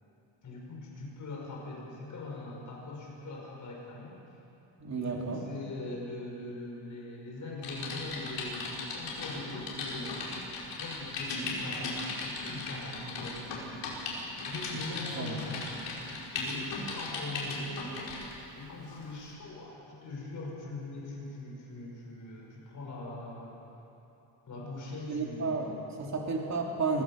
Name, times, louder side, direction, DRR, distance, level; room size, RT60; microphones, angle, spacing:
voice 1, 0.4-4.2 5.0-10.4 10.7-13.8 14.5-16.0 16.3-17.9 18.6-23.6 24.5-25.9, left 2 dB, 45° left, -2 dB, 6.0 m, -41 dB
voice 2, 4.8-5.4 15.1-15.4 25.1-27.0, right 4 dB, 40° right, 0 dB, 2.8 m, -32 dB
Typing, 7.6-18.3 18.9-19.1, left 3 dB, 70° left, 4.8 m, -37 dB
24.0 x 16.0 x 7.4 m, 3.0 s
cardioid pair, 145°, 43 cm